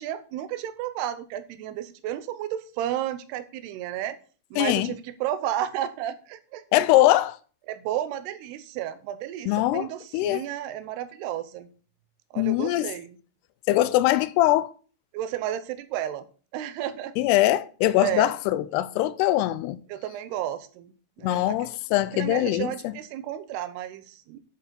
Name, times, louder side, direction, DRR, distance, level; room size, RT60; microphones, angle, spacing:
voice 1, 0.0-4.1 4.5-6.9 7.7-11.7 12.3-13.2 15.1-16.3 16.5-17.1 18.0-18.3 19.9-20.9 21.2-21.7 22.1-24.4, right 11 dB, 85° right, 2.8 m, -32 dB
voice 2, 4.6-4.9 6.7-7.4 9.5-9.9 10.1-10.4 12.4-12.9 13.7-14.7 17.2-19.8 21.2-22.7, left 15 dB, 85° left, 2.6 m, -22 dB
9.5 x 8.3 x 4.3 m
omnidirectional pair, 4.7 m